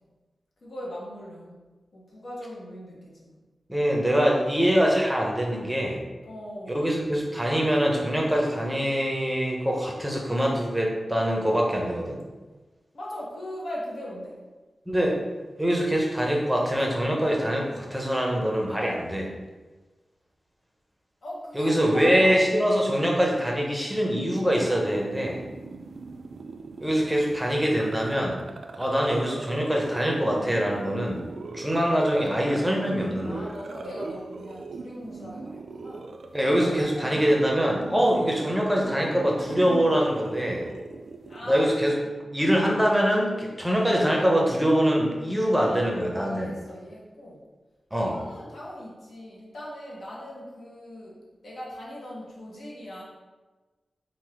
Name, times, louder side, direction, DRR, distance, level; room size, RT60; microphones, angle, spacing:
voice 1, 0.6-1.6 1.9-3.3 6.2-6.8 12.9-14.4 21.2-22.4 22.7-22.9 25.6-26.0 33.2-36.1 36.9-37.3 41.3-42.2 45.6-47.4 48.0-53.0, equal, 65° left, -5 dB, 1.1 m, -40 dB
voice 2, 3.7-6.0 6.7-12.2 14.9-15.2 15.6-19.3 21.5-25.4 26.8-28.4 28.8-31.2 31.5-33.4 36.3-40.7 41.5-42.0 42.3-46.5 47.9-48.2, equal, 5° right, -1 dB, 0.7 m, -24 dB
sound 1, 24.6-41.8, right 3 dB, 65° right, 0.3 m, -40 dB
3.9 x 2.6 x 4.7 m, 1.3 s
wide cardioid pair, 150°, 0 cm